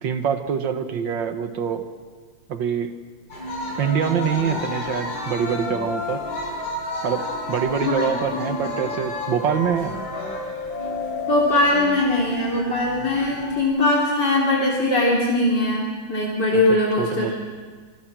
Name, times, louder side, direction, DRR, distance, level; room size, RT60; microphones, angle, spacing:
voice 1, 0.0-1.9 2.5-3.0 3.8-6.2 7.0-10.0 16.5-17.4, right 7 dB, 75° right, 7 dB, 2.1 m, -25 dB
scary clown music, 3.3-13.6, left 2 dB, 85° left, 6.1 m, -31 dB
voice 2, 11.3-17.4, left 2 dB, 65° left, -4 dB, 4.0 m, -21 dB
25.0 x 24.0 x 6.2 m, 1.5 s
omnidirectional pair, 2.0 m